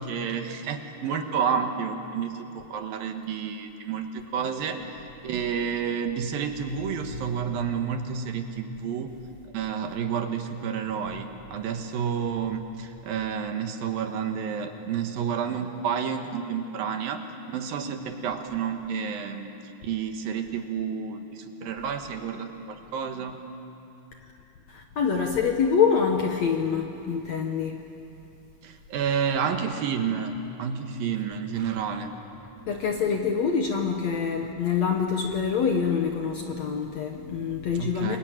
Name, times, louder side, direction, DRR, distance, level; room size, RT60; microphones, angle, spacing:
voice 1, 0.0-4.8 5.2-9.1 9.5-17.2 17.5-19.5 19.8-23.4 28.6-32.1 37.8-38.2, right 7 dB, 70° right, 5 dB, 3.0 m, -30 dB
voice 2, 24.7-27.8 32.7-38.2, left 6 dB, 60° left, 3 dB, 1.9 m, -25 dB
28.5 x 22.5 x 9.0 m, 2.8 s
omnidirectional pair, 4.5 m